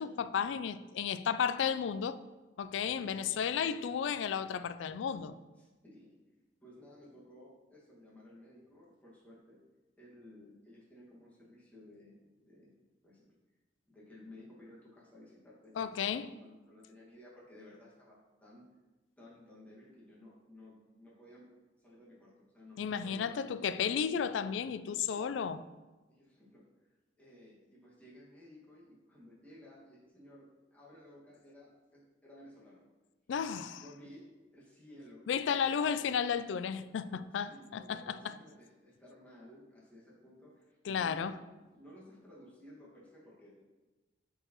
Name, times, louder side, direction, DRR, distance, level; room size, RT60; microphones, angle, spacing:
voice 1, 0.0-2.2 2.6-5.3 15.8-16.3 22.8-25.6 33.3-33.8 35.3-38.3 40.9-41.4, left 7 dB, 90° left, 0.3 m, -33 dB
voice 2, 5.6-6.2 6.6-9.6 10.0-13.3 13.9-18.6 19.2-21.5 21.8-23.5 24.9-25.4 26.1-32.8 33.4-35.3 35.7-36.1 37.3-43.6, left 1 dB, 10° left, 1.8 m, -56 dB
7.7 x 4.6 x 3.0 m
head